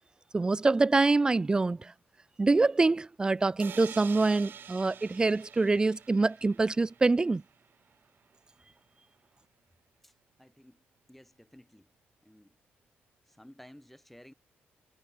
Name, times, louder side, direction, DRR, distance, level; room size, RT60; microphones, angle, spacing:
voice 1, 0.3-1.8 2.4-7.4, right 3 dB, 20° right, 0.4 m, -25 dB
sound 1, 3.6-7.4, right 8 dB, 55° right, 2.7 m, -47 dB
voice 2, 10.0-10.8 11.1-11.9 12.2-12.6 13.3-14.3, left 1 dB, 5° left, 7.4 m, -55 dB
cardioid pair, 110°, 4 cm